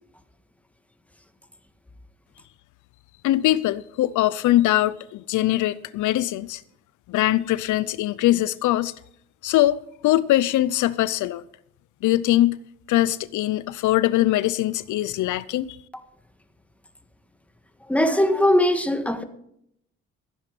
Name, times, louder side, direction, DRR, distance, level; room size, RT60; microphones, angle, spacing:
voice 1, 3.2-6.6 7.1-8.9 9.4-11.4 12.0-12.6 12.9-15.8, left 15 dB, 80° left, 0.6 m, -22 dB
voice 2, 17.9-19.2, left 1 dB, 5° left, 1.7 m, -20 dB
14.5 x 10.0 x 5.3 m
cardioid pair, 90°, 30 cm